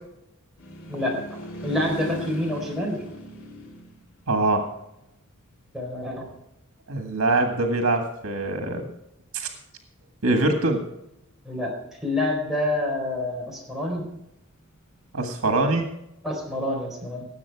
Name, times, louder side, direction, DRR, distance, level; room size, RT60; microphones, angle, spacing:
sound 1, 0.6-5.5 15.0-15.7, left 2 dB, 75° left, 3.0 m, -39 dB
voice 1, 0.9-3.0 5.7-6.2 11.4-11.7 12.0-14.1 16.2-17.2, left 1 dB, ahead, -2 dB, 3.9 m, -27 dB
voice 2, 4.3-4.6 6.9-8.8 9.3-9.5 10.2-10.8 15.1-15.8, right 2 dB, 85° right, 4 dB, 1.7 m, -23 dB
18.0 x 7.7 x 4.6 m, 0.85 s
head